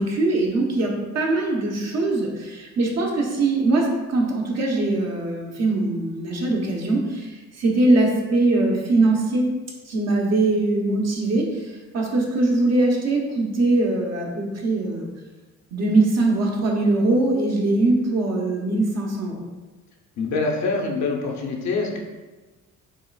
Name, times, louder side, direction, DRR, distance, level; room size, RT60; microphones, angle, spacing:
voice 1, 0.0-9.5 9.9-15.1 15.7-19.4, right 2 dB, 60° right, -1 dB, 1.0 m, -22 dB
voice 2, 20.2-22.0, left 3 dB, 65° left, 1 dB, 0.7 m, -25 dB
7.2 x 2.4 x 2.3 m, 1.2 s
cardioid pair, 90°, 30 cm